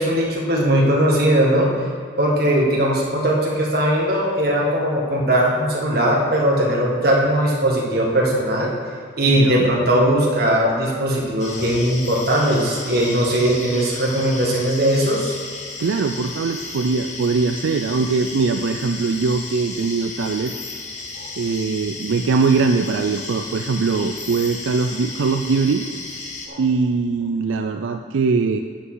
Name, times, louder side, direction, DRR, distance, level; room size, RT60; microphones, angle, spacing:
voice 1, 0.0-1.7 2.2-8.7 9.2-15.4 21.2-21.3 26.5-26.6, right 1 dB, 50° right, -3 dB, 1.7 m, -19 dB
voice 2, 9.3-9.7 15.8-20.5 21.4-25.8 26.6-28.6, right 4 dB, 85° right, 6 dB, 0.4 m, -21 dB
sound 1, 11.4-26.5, left 3 dB, 35° left, 1.1 m, -34 dB
11.0 x 8.1 x 3.9 m, 2.1 s
head